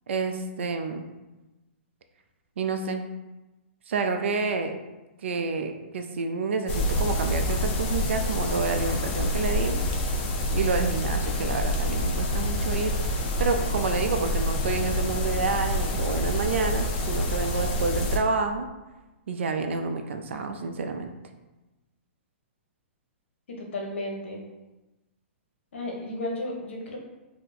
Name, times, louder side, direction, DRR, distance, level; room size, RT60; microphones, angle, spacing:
voice 1, 0.1-1.0 2.6-3.1 3.9-4.8 5.2-9.8 10.5-18.7 19.3-21.1, right 4 dB, 75° right, 6 dB, 0.4 m, -29 dB
sound 1, 6.7-18.2, left 1 dB, 40° left, 0.5 m, -27 dB
voice 2, 23.5-24.4 25.7-27.0, left 1 dB, 75° left, 0 dB, 0.9 m, -33 dB
2.6 x 2.1 x 3.9 m, 1.1 s
hypercardioid pair, 140°, 7 cm